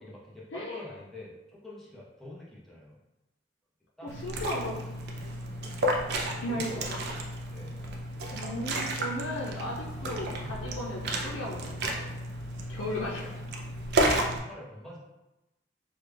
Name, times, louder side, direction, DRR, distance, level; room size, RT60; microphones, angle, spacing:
voice 1, 0.0-3.0 4.0-4.1 5.9-7.8 13.9-15.0, left 1 dB, ahead, -6 dB, 0.7 m, -46 dB
voice 2, 0.5-0.9 4.0-4.7 6.4-6.7 8.2-12.1 12.7-13.3, left 1 dB, 90° left, -5 dB, 0.6 m, -36 dB
Liquid, 4.1-14.4, right 1 dB, 55° right, 0.4 m, -32 dB
3.3 x 2.3 x 3.3 m, 0.98 s
head